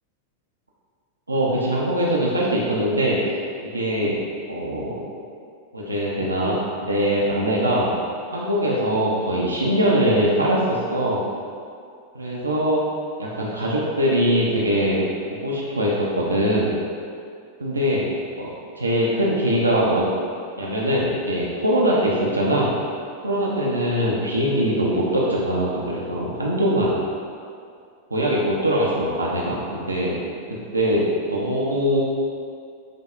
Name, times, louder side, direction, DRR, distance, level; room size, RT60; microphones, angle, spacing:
voice 1, 1.3-3.2 3.6-4.2 4.5-5.0 5.7-7.9 8.3-11.2 12.1-12.8 13.2-15.0 15.3-16.7 17.6-18.1 18.4-20.1 20.6-22.7 23.2-27.0 28.1-30.2 30.7-31.0 31.3-32.0, equal, 80° right, -5 dB, 0.4 m, -22 dB
5.0 x 2.1 x 2.3 m, 2.3 s
figure-of-eight pair, 90°, 0 cm